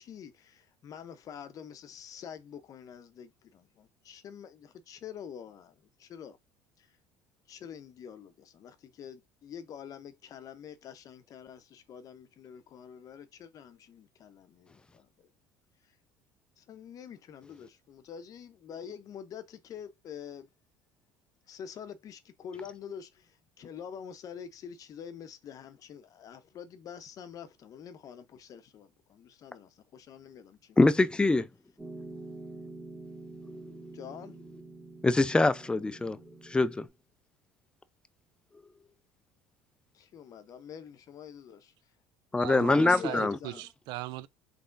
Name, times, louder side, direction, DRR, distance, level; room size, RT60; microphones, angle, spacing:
voice 1, 0.0-6.4 6.8-6.9 7.5-15.3 16.6-20.5 21.5-30.8 33.9-34.3 39.9-41.7 42.4-43.7, left 8 dB, 50° left, 0.7 m, -46 dB
voice 2, 30.8-31.5 35.0-36.2 36.4-36.9 42.3-43.4, left 2 dB, 10° left, 0.4 m, -24 dB
Piano, 31.8-36.9, right 2 dB, 10° right, 1.8 m, -46 dB
voice 3, 42.3-44.3, right 17 dB, 70° right, 0.4 m, -38 dB
3.6 x 3.4 x 2.5 m
supercardioid pair, 90°, 8 cm